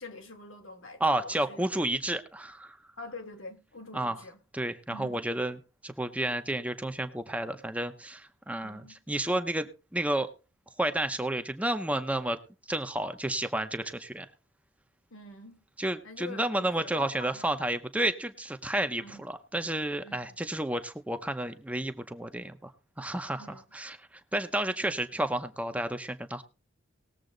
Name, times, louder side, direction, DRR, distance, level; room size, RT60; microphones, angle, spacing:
voice 1, 0.0-1.6 3.0-4.4 4.9-5.2 8.6-9.0 15.1-15.6 16.0-17.5 19.0-19.2 20.0-20.2 23.4-23.6, left 2 dB, 80° left, 2.5 m, -45 dB
voice 2, 1.0-2.8 3.9-4.2 4.5-5.6 5.8-10.3 10.8-12.4 12.7-14.3 15.8-22.7 23.0-26.4, right 1 dB, 5° right, 0.7 m, -31 dB
19.0 x 7.6 x 3.9 m
head